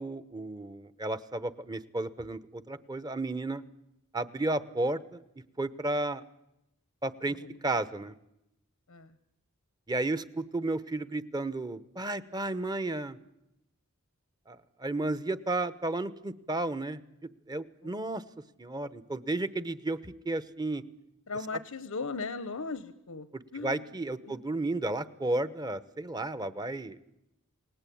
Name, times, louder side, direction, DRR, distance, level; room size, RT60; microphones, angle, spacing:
voice 1, 0.0-3.6 4.1-5.2 5.6-6.2 7.0-8.1 9.9-13.2 14.5-17.0 17.5-18.2 18.6-20.8 23.3-27.0, right 2 dB, 20° right, 14 dB, 0.9 m, -33 dB
voice 2, 7.2-7.6 8.9-9.1 17.8-18.0 21.3-23.3 23.5-23.9 24.2-24.4, left 4 dB, 80° left, 13 dB, 1.1 m, -38 dB
28.5 x 19.0 x 8.6 m, 0.85 s
head